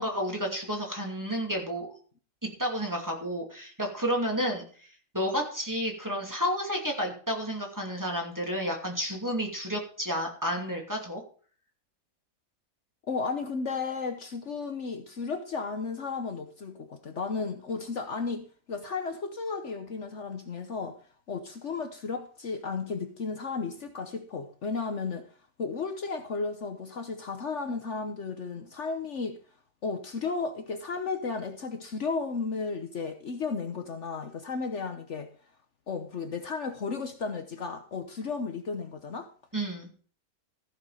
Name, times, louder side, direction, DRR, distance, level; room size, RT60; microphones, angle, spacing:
voice 1, 0.0-1.9 2.6-4.6 5.1-11.2 39.5-39.9, equal, 15° right, 2.6 m, -31 dB
voice 2, 13.1-21.0 21.3-25.3 25.6-29.4 29.8-35.3 35.9-39.3, left 4 dB, 60° left, 1.3 m, -34 dB
14.5 x 6.7 x 5.0 m
omnidirectional pair, 1.5 m